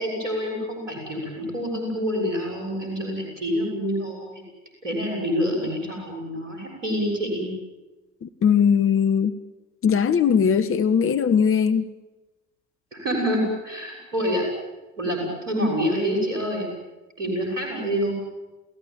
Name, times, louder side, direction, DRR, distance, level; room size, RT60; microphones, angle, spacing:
voice 1, 0.0-4.4 4.8-7.5 12.9-14.4 15.0-16.7 17.2-18.1, equal, 85° right, 0 dB, 6.7 m, -27 dB
voice 2, 8.2-9.4 9.8-11.9, left 7 dB, 35° left, 10 dB, 1.3 m, -20 dB
29.0 x 17.0 x 9.5 m, 1.1 s
figure-of-eight pair, 60°, 38 cm